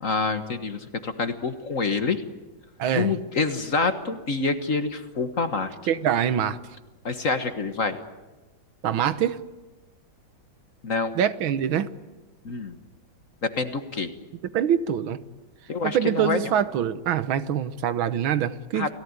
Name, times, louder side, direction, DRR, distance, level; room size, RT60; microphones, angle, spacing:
voice 1, 0.0-2.2 2.9-5.7 7.1-8.0 10.8-11.2 12.5-12.8 13.4-14.1 15.7-16.4 18.7-18.9, left 4 dB, 45° left, 1.6 m, -27 dB
voice 2, 2.8-3.1 5.9-6.6 8.8-9.4 11.1-11.9 14.5-15.2 15.8-18.9, right 9 dB, 90° right, 1.9 m, -24 dB
30.0 x 18.0 x 9.6 m
omnidirectional pair, 2.1 m